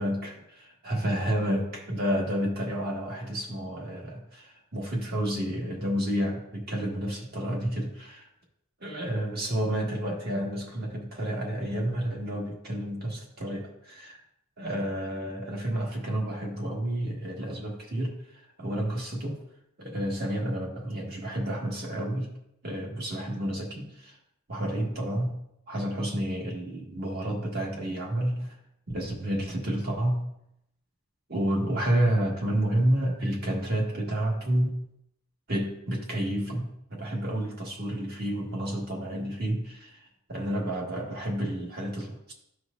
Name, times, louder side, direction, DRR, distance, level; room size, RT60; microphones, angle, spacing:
voice 1, 0.0-8.3 8.8-14.2 14.6-19.4 19.8-22.3 22.6-24.2 24.5-25.4 25.7-28.6 28.9-30.3 31.3-34.8 35.5-42.3, right 1 dB, 45° right, -1 dB, 1.8 m, -30 dB
13.5 x 4.6 x 2.6 m, 0.79 s
head